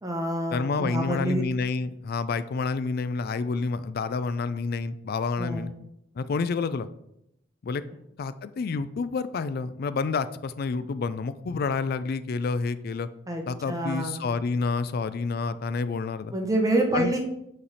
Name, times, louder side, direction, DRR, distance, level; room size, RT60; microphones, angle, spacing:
voice 1, 0.0-1.4 5.4-5.7 13.3-13.4 13.7-14.2 16.3-17.2, right 1 dB, 20° right, 2 dB, 0.9 m, -27 dB
voice 2, 0.5-5.7 6.2-6.9 7.6-7.8 8.2-13.1 13.5-16.3 16.9-17.1, left 4 dB, 55° left, 14 dB, 0.4 m, -29 dB
8.4 x 3.3 x 4.1 m, 0.80 s
head